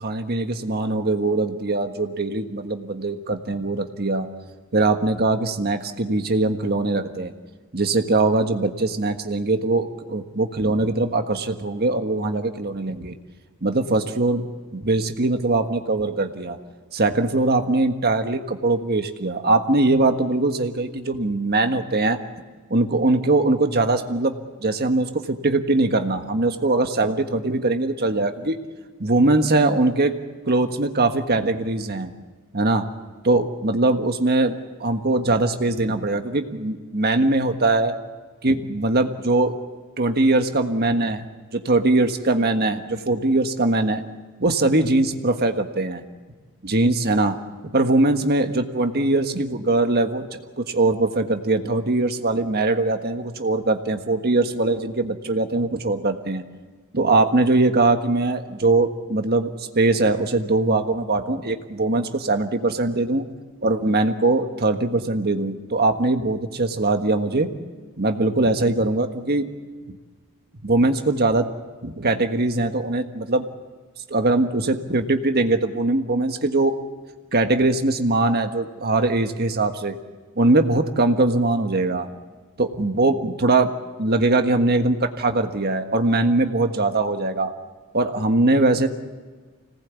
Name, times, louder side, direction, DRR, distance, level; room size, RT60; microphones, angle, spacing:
voice 1, 0.0-4.3 4.7-7.3 7.7-13.2 13.6-14.5 14.7-16.6 16.9-22.2 22.7-24.3 24.6-28.6 29.0-30.2 30.5-32.1 32.5-32.9 33.2-38.0 38.4-39.6 40.0-41.2 41.5-44.0 44.4-46.0 46.6-47.4 47.7-56.4 56.9-63.2 63.6-67.5 68.0-69.5 70.6-71.5 71.8-73.5 74.1-76.8 77.3-80.0 80.4-82.1 82.6-83.7 84.0-87.5 87.9-88.9, right 2 dB, 45° right, 6 dB, 1.5 m, -21 dB
26.0 x 19.0 x 8.4 m, 1.4 s
head